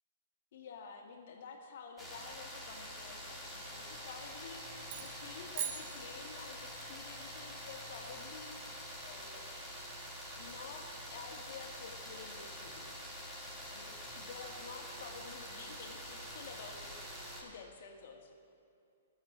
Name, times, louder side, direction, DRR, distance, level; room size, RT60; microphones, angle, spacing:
voice 1, 0.5-9.6 10.3-12.9 13.7-16.9 17.4-18.3, left 5 dB, 60° left, 3 dB, 1.7 m, -51 dB
sound 1, 2.0-17.4, equal, 5° right, 1.9 m, -46 dB
sound 2, 4.9-6.8, right 9 dB, 40° right, 0.9 m, -43 dB
13.5 x 7.4 x 6.2 m, 2.7 s
hypercardioid pair, 150°, 0 cm